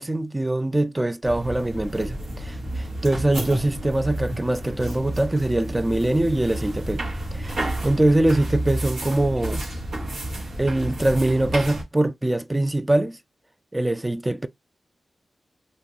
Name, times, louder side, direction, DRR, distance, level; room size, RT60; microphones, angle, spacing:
voice 1, 0.0-7.0 7.3-9.7 10.6-13.2 13.7-14.5, right 1 dB, 20° right, 0.4 m, -23 dB
sound 1, 1.2-11.8, right 1 dB, 85° right, 1.5 m, -31 dB
2.8 x 2.6 x 3.9 m
cardioid pair, 50°, 0 cm